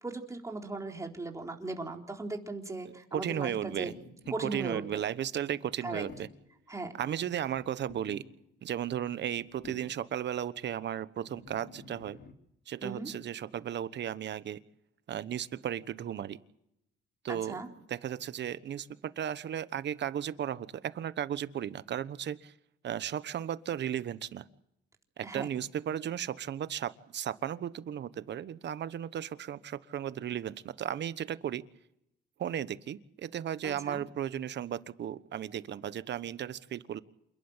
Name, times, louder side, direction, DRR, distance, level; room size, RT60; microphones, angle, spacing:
voice 1, 0.0-3.9 4.3-5.0 5.8-6.1 6.7-6.9 12.8-13.1 17.3-17.7 25.2-25.5 33.6-34.0, right 2 dB, 15° right, 2 dB, 3.9 m, -38 dB
voice 2, 3.1-3.9 4.4-6.3 7.0-8.2 8.6-12.2 12.7-14.6 15.1-16.4 17.2-17.6 17.9-22.5 22.8-24.4 25.2-31.6 32.4-37.0, right 10 dB, 60° right, 14 dB, 1.2 m, -35 dB
sound 1, 3.5-5.4 6.0-6.6 7.5-8.6 9.2-10.2 11.2-12.3, left 4 dB, 60° left, 3.4 m, -52 dB
28.5 x 12.0 x 9.0 m, 0.79 s
cardioid pair, 90°, 20 cm